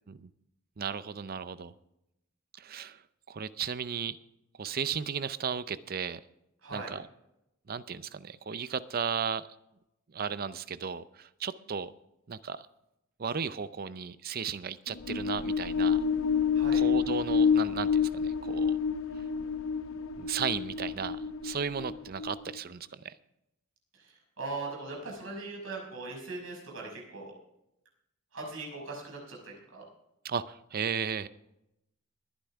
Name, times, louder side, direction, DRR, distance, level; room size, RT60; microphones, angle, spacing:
voice 1, 0.8-1.7 2.6-3.0 3.3-4.2 4.6-6.2 6.7-7.1 7.7-9.5 10.1-11.9 12.3-12.7 13.2-16.0 16.7-18.8 20.2-23.1 30.2-31.3, right 6 dB, 45° right, 15 dB, 0.5 m, -35 dB
voice 2, 6.6-6.9 16.5-16.8 23.9-27.3 28.3-29.8, right 3 dB, 75° right, -2 dB, 5.7 m, -40 dB
sound 1, 14.9-22.6, left 6 dB, 70° left, 0.7 m, -28 dB
21.0 x 10.0 x 3.5 m, 0.84 s
head